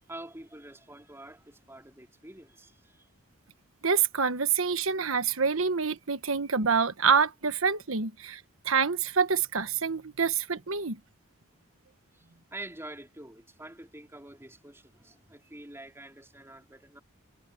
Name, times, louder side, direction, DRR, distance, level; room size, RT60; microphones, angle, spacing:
voice 1, 0.1-3.1 12.1-17.0, right 1 dB, 10° right, 3.8 m, -46 dB
voice 2, 3.8-8.4 8.6-11.0, right 6 dB, 75° right, 1.3 m, -26 dB
head